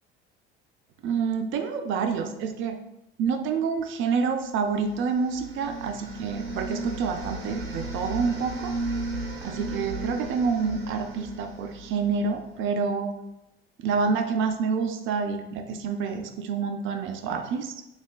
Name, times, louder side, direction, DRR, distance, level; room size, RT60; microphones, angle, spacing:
voice 1, 1.0-2.8 3.2-8.7 9.4-13.1 13.8-17.7, right 5 dB, 45° right, 6 dB, 0.4 m, -28 dB
sound 1, 4.5-12.5, right 2 dB, 85° right, 0.7 m, -35 dB
3.1 x 2.7 x 2.3 m, 0.88 s
figure-of-eight pair, 60°, 30 cm